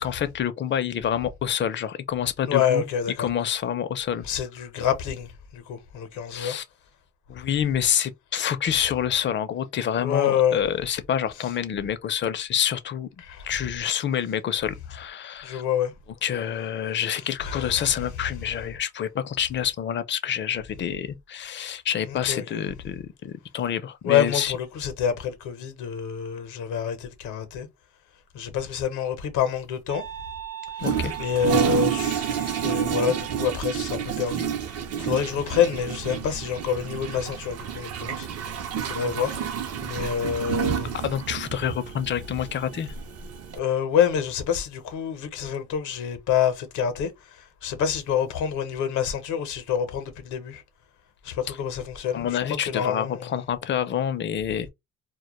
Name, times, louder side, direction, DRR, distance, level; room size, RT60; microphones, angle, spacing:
voice 1, 0.0-2.8 3.2-4.3 6.3-6.6 7.3-13.1 13.4-15.6 16.2-24.6 30.8-31.1 39.8-39.9 40.9-42.9 52.1-54.7, left 9 dB, 40° left, 0.4 m, -27 dB
voice 2, 2.5-3.3 4.3-6.5 10.0-10.6 13.2-13.5 15.4-15.9 17.4-17.7 22.1-22.6 24.0-27.7 28.3-30.0 31.2-38.3 38.8-39.4 39.8-41.0 43.6-47.1 47.6-50.6 51.2-52.4 52.7-53.3, left 8 dB, 80° left, 0.7 m, -27 dB
sound 1, 29.9-33.5, right 10 dB, 85° right, 0.9 m, -37 dB
Toilet flush, 30.8-43.6, right 8 dB, 55° right, 0.5 m, -30 dB
2.1 x 2.1 x 2.9 m
cardioid pair, 90°, 30 cm